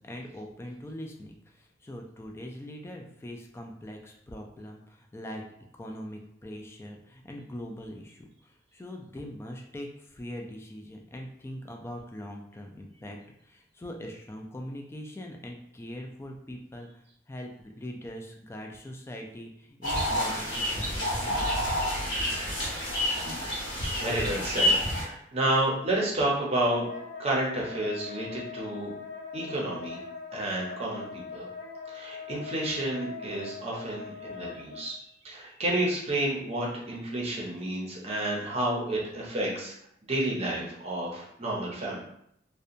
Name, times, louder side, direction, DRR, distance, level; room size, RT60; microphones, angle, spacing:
voice 1, 0.0-5.4 5.8-13.2 13.4-21.4 22.2-22.3, equal, 15° left, 1 dB, 0.3 m, -42 dB
sound 1, 19.8-25.0, equal, 70° left, 1.1 m, -28 dB
sound 2, 20.5-23.6, equal, 75° right, 0.4 m, -43 dB
voice 2, 24.0-26.9 27.2-28.9 29.3-30.0 30.3-31.5 31.9-35.0 35.2-39.7 40.1-42.0, right 1 dB, 35° right, -3 dB, 0.6 m, -30 dB
Wind instrument woodwind instrument, 26.6-34.8, left 5 dB, 40° left, 0.7 m, -42 dB
2.7 x 2.2 x 2.5 m, 0.72 s
head